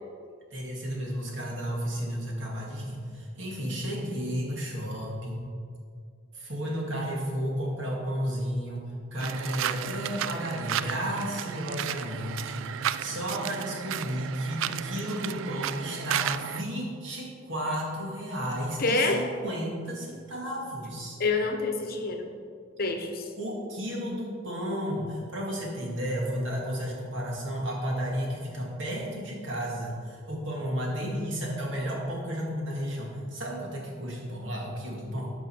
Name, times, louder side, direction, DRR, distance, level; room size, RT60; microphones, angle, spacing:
voice 1, 0.5-5.4 6.3-8.9 9.1-21.2 23.4-35.3, equal, 70° right, -2 dB, 2.1 m, -33 dB
sound 1, 9.2-16.6, right 10 dB, 90° right, 0.3 m, -33 dB
voice 2, 18.8-19.3 21.2-22.3 22.8-23.3, left 3 dB, 50° left, 4 dB, 0.9 m, -27 dB
11.5 x 5.4 x 4.6 m, 2.2 s
head